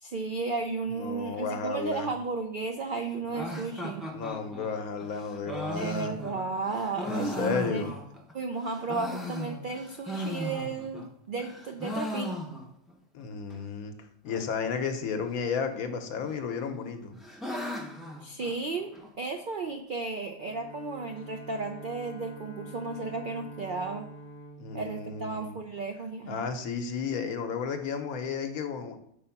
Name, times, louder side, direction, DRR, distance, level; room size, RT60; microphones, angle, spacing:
voice 1, 0.0-4.1 5.7-7.9 8.3-12.3 18.2-24.1 24.7-26.5, right 3 dB, 90° right, 5 dB, 0.4 m, -34 dB
voice 2, 0.9-2.1 3.3-3.4 4.1-6.2 7.0-7.9 13.1-13.9 14.2-17.2 24.6-25.5 26.3-29.0, left 5 dB, 75° left, 6 dB, 1.2 m, -33 dB
sound 1, 3.3-8.3 8.7-11.1 11.4-12.9 13.2-13.3 13.5-13.6 14.3-14.7 15.7-16.3 16.7-19.1, equal, ahead, 0.3 m, -37 dB
Bowed string instrument, 20.3-26.0, right 1 dB, 50° left, 0.7 m, -46 dB
5.4 x 4.4 x 5.7 m, 0.71 s
omnidirectional pair, 1.5 m